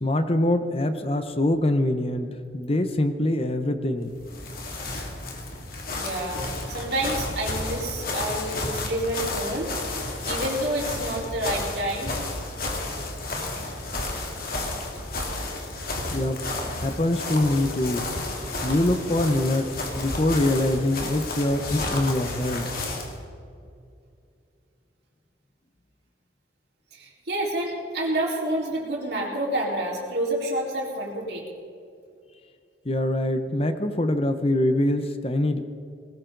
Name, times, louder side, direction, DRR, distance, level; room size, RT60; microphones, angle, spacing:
voice 1, 0.0-4.1 16.1-16.5 16.8-18.1 18.6-22.7 32.8-35.6, left 1 dB, 30° left, 9 dB, 0.8 m, -24 dB
sound 1, 4.1-23.2, left 2 dB, 50° left, 2.5 m, -32 dB
voice 2, 6.0-6.4 6.7-9.7 10.3-12.3 26.9-31.4, right 1 dB, 65° right, -3 dB, 4.3 m, -28 dB
20.0 x 18.0 x 3.9 m, 2.4 s
head